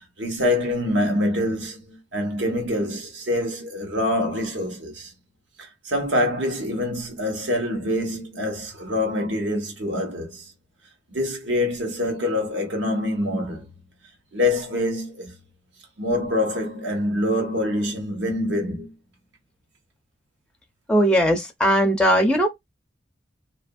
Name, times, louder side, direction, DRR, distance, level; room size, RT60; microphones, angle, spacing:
voice 1, 0.2-5.1 5.6-10.4 11.1-13.7 14.3-15.4 16.0-18.9, left 1 dB, 80° right, 1.0 m, -25 dB
voice 2, 20.9-22.5, equal, 5° left, 0.4 m, -19 dB
2.7 x 2.5 x 2.2 m
head